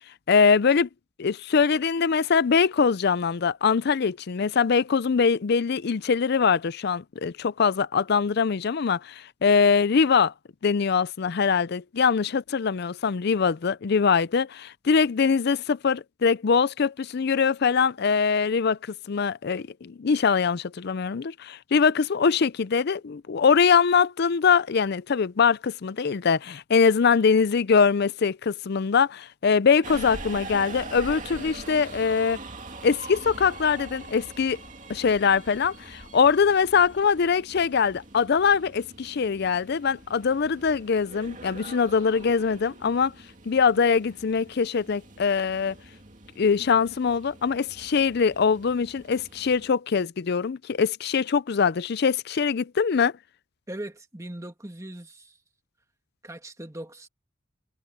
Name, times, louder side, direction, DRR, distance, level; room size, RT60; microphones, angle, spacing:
voice 1, 0.3-0.9 1.2-10.3 10.6-18.8 19.1-32.4 32.8-34.6 34.9-43.1 43.5-45.7 46.4-53.1, left 5 dB, 50° left, 0.4 m, -23 dB
Subway metro underground, 29.8-49.7, right 2 dB, 40° right, 2.5 m, -43 dB
voice 2, 53.7-55.4 56.2-57.1, right 1 dB, 15° right, 1.9 m, -39 dB
head